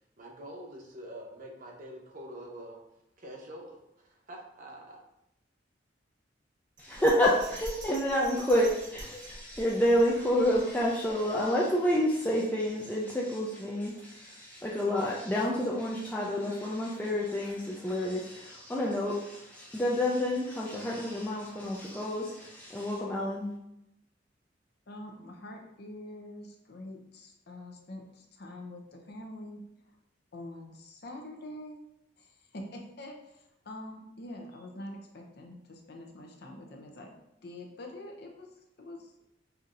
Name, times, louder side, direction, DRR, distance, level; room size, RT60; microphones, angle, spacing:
voice 1, 0.2-2.8 3.2-5.0, right 1 dB, 45° right, -1 dB, 0.8 m, -45 dB
voice 2, 6.8-23.5, left 1 dB, 10° left, -4 dB, 0.4 m, -29 dB
Bell, 6.8-11.1 11.5-11.6, right 2 dB, 85° right, 1.2 m, -46 dB
voice 3, 24.9-29.6 30.3-31.9 32.2-37.1 37.4-38.5 38.8-39.1, left 1 dB, 55° left, 2 dB, 0.6 m, -45 dB
5.5 x 2.7 x 2.5 m, 0.84 s
head